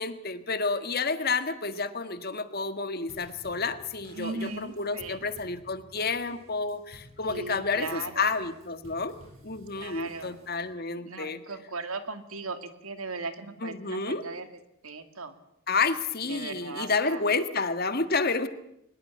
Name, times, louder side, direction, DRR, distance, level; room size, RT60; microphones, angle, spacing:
voice 1, 0.0-9.1 9.4-11.4 13.6-14.2 15.7-18.5, left 4 dB, 45° left, 10 dB, 1.7 m, -30 dB
Drum kit / Snare drum / Bass drum, 3.1-10.8, right 1 dB, 65° right, 7.8 m, -53 dB
voice 2, 4.1-5.3 7.3-8.4 9.8-10.4 11.0-14.4 14.8-15.3 16.3-17.2, right 3 dB, 85° right, 9 dB, 2.4 m, -38 dB
22.0 x 20.5 x 8.6 m, 0.80 s
head